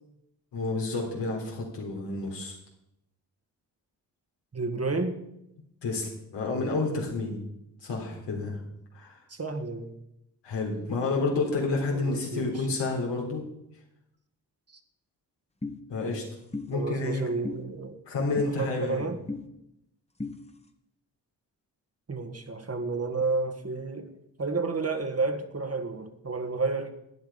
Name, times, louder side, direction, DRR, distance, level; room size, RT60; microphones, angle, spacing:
voice 1, 0.5-2.6 5.8-7.4 7.8-8.6 8.9-9.2 10.4-13.4 15.9-16.2 16.7-17.3 18.1-19.1, left 3 dB, 85° left, -1 dB, 3.7 m, -30 dB
voice 2, 4.5-5.2 9.3-9.9 11.9-12.7 16.7-18.0 18.6-19.2 22.1-24.1 24.4-26.9, right 3 dB, 35° right, 7 dB, 1.7 m, -31 dB
sound 1, 15.6-15.8 16.5-16.7 17.4-17.6 18.4-18.5 19.3-19.4 20.2-20.3, left 3 dB, 15° left, 1.5 m, -33 dB
12.0 x 9.1 x 5.5 m, 0.82 s
supercardioid pair, 45°, 42 cm